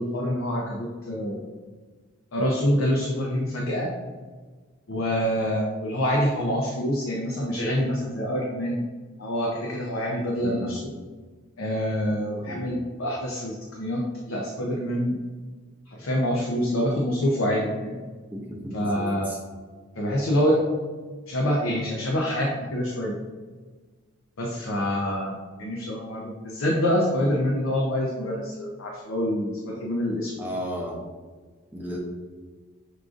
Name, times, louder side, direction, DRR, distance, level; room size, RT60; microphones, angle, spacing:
voice 1, 0.0-1.4 2.3-3.9 4.9-8.9 9.2-10.9 11.6-15.2 15.9-18.0 18.7-19.3 20.0-20.6 21.3-23.2 24.4-30.4, equal, 70° left, -1 dB, 0.5 m, -26 dB
voice 2, 10.4-10.7 12.5-12.7 18.3-19.4 30.4-31.0 31.7-32.0, equal, 10° right, -2 dB, 0.5 m, -34 dB
6.3 x 2.4 x 2.4 m, 1.4 s
head